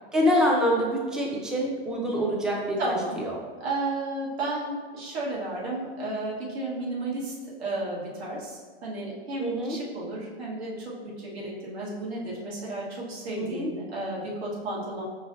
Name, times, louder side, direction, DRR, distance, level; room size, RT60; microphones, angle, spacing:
voice 1, 0.1-3.3 9.4-9.8 13.3-13.7, equal, ahead, -2 dB, 0.4 m, -26 dB
voice 2, 2.8-3.2 3.6-7.3 7.6-15.0, right 2 dB, 80° right, -5 dB, 1.5 m, -33 dB
5.4 x 3.1 x 2.6 m, 1.6 s
hypercardioid pair, 125°, 31 cm